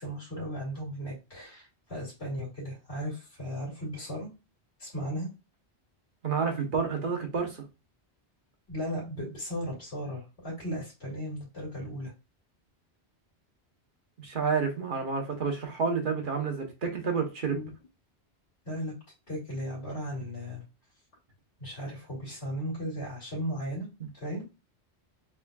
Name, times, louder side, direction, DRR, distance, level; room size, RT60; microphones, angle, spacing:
voice 1, 0.0-4.3 4.8-5.3 8.7-12.1 17.5-17.7 18.6-18.9 19.3-20.6 21.6-23.9 24.2-24.4, equal, 85° left, 2.2 m, -36 dB
voice 2, 6.2-7.6 14.2-17.6, right 5 dB, 50° right, 1.1 m, -29 dB
3.7 x 3.4 x 2.3 m
omnidirectional pair, 1.1 m